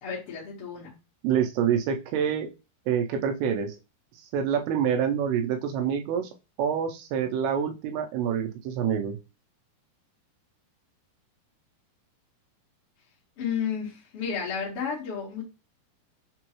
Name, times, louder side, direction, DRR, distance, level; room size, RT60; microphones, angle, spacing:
voice 1, 0.0-0.9 13.4-15.4, left 7 dB, 60° left, -4 dB, 1.5 m, -32 dB
voice 2, 1.2-2.5 2.9-3.8 4.2-6.3 6.6-9.2, right 8 dB, 80° right, 4 dB, 2.4 m, -26 dB
6.1 x 2.3 x 3.0 m, 0.28 s
omnidirectional pair, 4.7 m